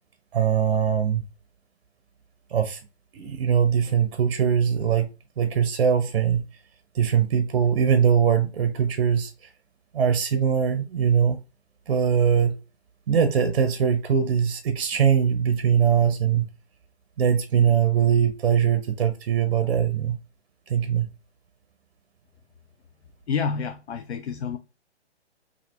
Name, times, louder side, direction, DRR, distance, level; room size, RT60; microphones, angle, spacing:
voice 1, 0.3-1.2 2.5-2.8 3.1-5.1 5.4-6.4 6.9-9.3 9.9-11.4 11.9-12.5 13.1-16.5 17.2-20.2 20.7-21.1, right 8 dB, 55° right, 0.5 m, -21 dB
voice 2, 23.3-24.6, left 6 dB, 70° left, 0.5 m, -28 dB
5.7 x 2.5 x 2.2 m
figure-of-eight pair, 130°, 34 cm